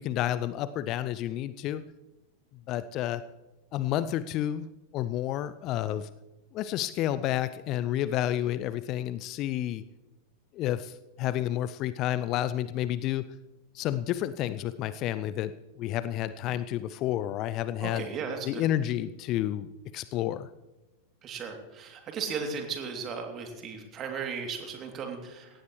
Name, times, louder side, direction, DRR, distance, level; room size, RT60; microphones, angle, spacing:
voice 1, 0.0-1.8 2.7-3.2 3.7-4.7 4.9-6.1 6.5-9.8 10.5-13.2 13.7-15.5 15.8-18.1 18.5-19.7 19.9-20.5, left 12 dB, 35° left, 15 dB, 0.5 m, -30 dB
voice 2, 17.8-18.6 21.2-25.5, right 5 dB, 30° right, 2 dB, 3.0 m, -36 dB
18.0 x 15.0 x 3.2 m, 1.0 s
figure-of-eight pair, 90°, 0 cm